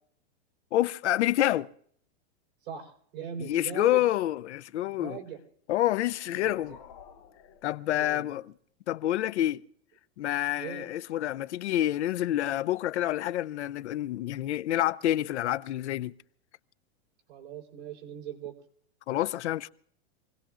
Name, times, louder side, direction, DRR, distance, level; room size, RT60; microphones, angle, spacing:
voice 1, 0.7-1.7 3.4-5.2 5.7-6.7 7.6-8.4 8.9-9.6 10.2-16.1 19.1-19.7, left 13 dB, 90° left, 0.6 m, -28 dB
voice 2, 2.6-4.0 4.9-5.4 6.3-6.8 8.0-8.3 10.6-10.9 17.3-18.6, right 8 dB, 50° right, 3.9 m, -40 dB
sound 1, 6.0-8.5, left 8 dB, 35° left, 0.9 m, -54 dB
27.0 x 18.0 x 2.5 m
supercardioid pair, 175°, 33 cm